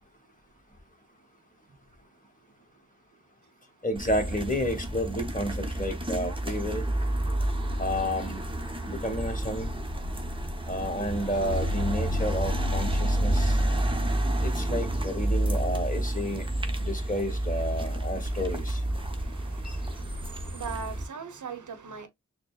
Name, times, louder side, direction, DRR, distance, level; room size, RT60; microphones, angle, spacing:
voice 1, 3.8-6.8 7.8-8.4 8.8-9.7 10.7-13.6 14.4-16.4 16.8-18.8 19.6-19.8, equal, 25° left, 1.5 m, -31 dB
sound 1, 4.0-21.0, right 1 dB, 15° right, 0.9 m, -29 dB
voice 2, 17.6-22.1, right 5 dB, 70° right, 0.9 m, -42 dB
6.5 x 2.2 x 2.4 m
wide cardioid pair, 65°, 31 cm